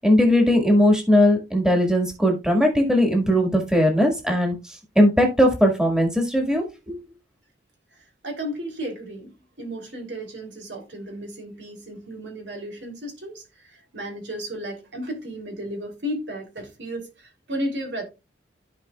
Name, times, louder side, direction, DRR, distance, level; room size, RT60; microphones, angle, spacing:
voice 1, 0.0-7.0, equal, 5° right, 1.8 m, -19 dB
voice 2, 8.2-9.3 9.6-18.0, equal, 70° right, 3.1 m, -34 dB
14.5 x 4.9 x 2.3 m
head